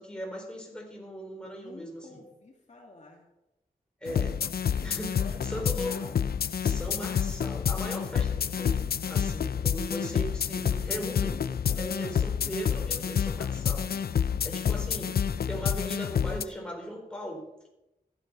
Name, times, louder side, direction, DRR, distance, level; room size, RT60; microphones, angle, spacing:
voice 1, 0.0-2.2 4.0-4.4 4.8-6.0 6.6-11.4 11.8-13.9 14.4-15.2 15.5-17.7, equal, 5° left, -1 dB, 4.8 m, -38 dB
voice 2, 1.5-3.2 5.2-6.2 11.7-12.2, left 3 dB, 50° left, -1 dB, 2.4 m, -51 dB
sound 1, 4.1-16.4, left 8 dB, 85° left, 0.6 m, -28 dB
14.5 x 12.0 x 5.5 m, 0.91 s
wide cardioid pair, 115°, 15 cm